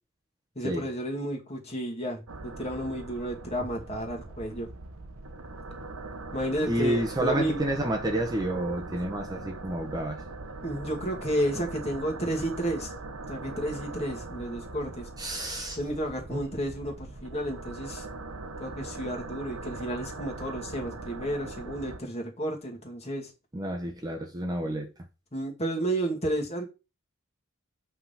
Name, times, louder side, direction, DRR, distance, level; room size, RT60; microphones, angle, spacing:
voice 1, 0.6-4.7 6.3-7.6 10.6-12.9 13.3-15.1 15.8-18.1 18.6-23.3 25.3-26.7, right 1 dB, 30° left, 2.2 m, -32 dB
sound 1, 2.3-22.0, right 2 dB, 80° right, 1.0 m, -41 dB
voice 2, 6.7-10.2 15.2-15.8 16.3-16.4 23.5-24.9, right 1 dB, 20° right, 0.9 m, -29 dB
8.6 x 3.7 x 5.8 m
head